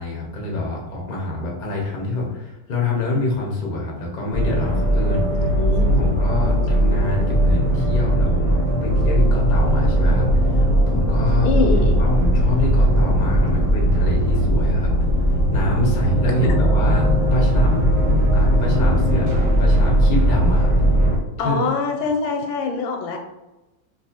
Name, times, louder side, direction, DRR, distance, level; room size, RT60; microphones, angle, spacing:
voice 1, 0.0-5.4 5.9-11.5 12.0-14.9 15.5-17.9 18.3-20.7 21.4-21.6, left 2 dB, 65° left, -2 dB, 0.4 m, -26 dB
sound 1, 4.3-21.2, equal, 15° right, 0.7 m, -18 dB
voice 2, 5.4-6.1 11.4-12.1 21.4-23.2, left 4 dB, 85° left, 4 dB, 1.4 m, -24 dB
4.0 x 2.5 x 2.8 m, 1.0 s
omnidirectional pair, 2.1 m